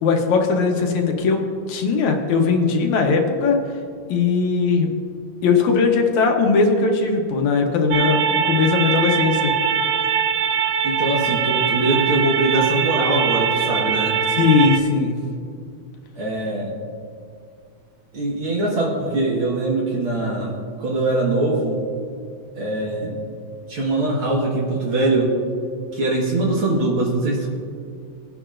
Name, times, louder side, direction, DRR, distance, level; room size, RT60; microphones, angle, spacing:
voice 1, 0.0-3.6 4.1-4.9 5.4-9.5 14.4-15.2, left 4 dB, 75° left, 2 dB, 2.4 m, -19 dB
sound 1, 7.9-14.8, right 7 dB, 75° right, 1.8 m, -22 dB
voice 2, 10.8-14.2 16.2-16.7 18.1-21.8 22.6-23.2 23.7-25.3 25.9-27.5, right 2 dB, 50° right, -2 dB, 2.0 m, -22 dB
20.5 x 9.9 x 2.5 m, 2.3 s
omnidirectional pair, 3.4 m